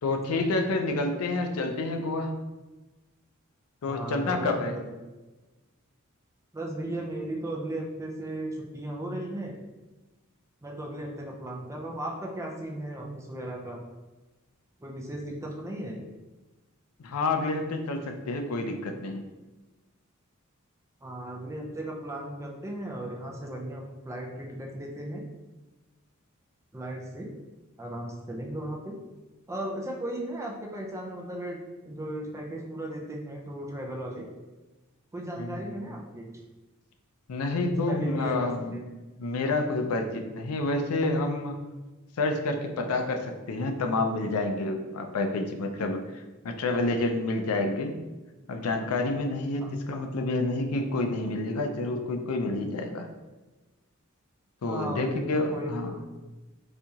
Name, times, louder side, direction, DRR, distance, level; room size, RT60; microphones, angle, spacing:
voice 1, 0.0-2.3 3.8-4.8 17.0-19.3 35.4-35.7 37.3-38.8 39.2-41.6 42.2-48.0 48.5-53.1 54.6-56.0, left 2 dB, 85° left, 5 dB, 0.4 m, -29 dB
voice 2, 3.9-4.8 6.5-9.6 10.6-13.8 14.8-16.0 21.0-25.2 26.7-27.3 27.8-29.0 29.5-31.6 31.8-34.3 35.1-36.3 37.6-38.8 49.6-49.7 54.6-55.2 55.5-56.1, right 1 dB, 15° right, 0 dB, 0.4 m, -36 dB
4.2 x 2.8 x 2.3 m, 1.2 s
head